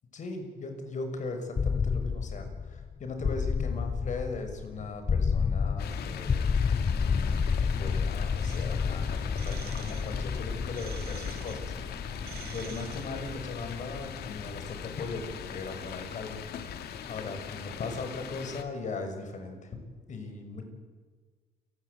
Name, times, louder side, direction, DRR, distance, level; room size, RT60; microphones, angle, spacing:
voice 1, 0.1-6.3 6.7-12.2 12.5-16.4 16.7-16.8 17.1-19.8 20.1-20.6, left 3 dB, 45° left, 6 dB, 6.6 m, -38 dB
sound 1, 1.6-17.4, left 5 dB, 25° left, 0.7 m, -31 dB
sound 2, 5.8-18.6, left 8 dB, 70° left, 2.8 m, -41 dB
sound 3, 8.4-13.4, right 11 dB, 70° right, 1.9 m, -48 dB
28.5 x 21.0 x 8.6 m, 1.5 s
cardioid pair, 110°, 17 cm